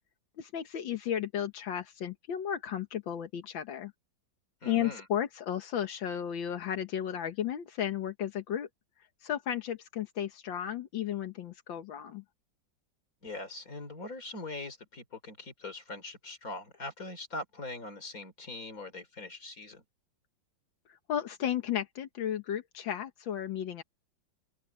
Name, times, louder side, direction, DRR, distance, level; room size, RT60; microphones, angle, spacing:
voice 1, 0.4-3.9 4.7-8.7 9.2-12.2 20.9-23.8, left 10 dB, 85° left, 1.9 m, -34 dB
voice 2, 4.6-5.0 13.2-19.8, left 2 dB, 45° left, 3.9 m, -42 dB
open air
omnidirectional pair, 2.1 m